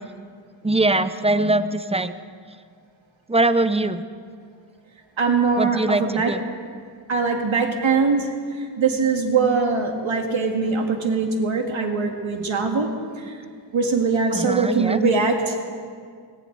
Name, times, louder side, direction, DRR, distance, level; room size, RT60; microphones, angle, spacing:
voice 1, 0.6-2.2 3.3-4.0 5.6-6.4 14.3-15.0, right 2 dB, 15° right, 12 dB, 0.6 m, -22 dB
voice 2, 5.2-6.3 7.1-12.9 13.2-13.4 13.7-15.7, right 4 dB, 85° right, 2 dB, 2.0 m, -22 dB
19.0 x 17.0 x 4.0 m, 2.1 s
wide cardioid pair, 95°, 46 cm